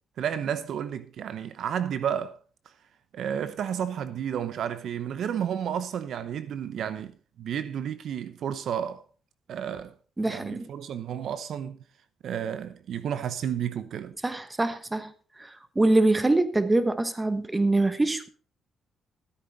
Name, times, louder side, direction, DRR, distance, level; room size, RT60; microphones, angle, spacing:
voice 1, 0.2-2.4 3.1-9.0 9.5-9.9 10.2-11.8 12.2-14.1, right 9 dB, 70° right, 0.8 m, -31 dB
voice 2, 10.2-10.6 14.2-15.1 15.4-18.3, right 2 dB, 15° right, 1.2 m, -24 dB
14.0 x 8.8 x 4.1 m
cardioid pair, 90°, 0 cm